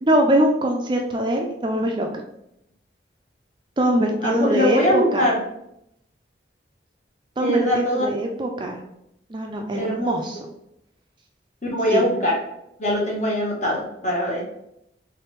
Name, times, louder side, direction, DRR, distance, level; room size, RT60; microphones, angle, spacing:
voice 1, 0.0-2.2 3.8-5.3 7.4-8.8 9.3-10.4 11.9-12.0, right 1 dB, 25° right, 2 dB, 0.4 m, -22 dB
voice 2, 4.2-5.4 7.4-8.1 9.7-10.2 11.6-12.4 12.8-14.4, equal, 40° left, -3 dB, 1.1 m, -22 dB
3.4 x 3.2 x 3.1 m, 0.79 s
head